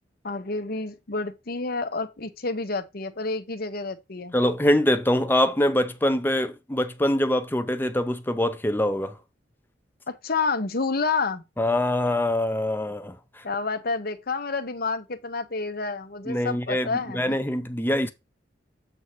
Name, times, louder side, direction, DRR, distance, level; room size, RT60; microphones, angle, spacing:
voice 1, 0.2-4.3 10.1-11.4 13.4-17.4, left 4 dB, 55° left, 1.0 m, -29 dB
voice 2, 4.3-9.1 11.6-13.1 16.3-16.9 17.1-18.1, left 1 dB, 10° left, 0.6 m, -24 dB
8.0 x 2.9 x 5.8 m
head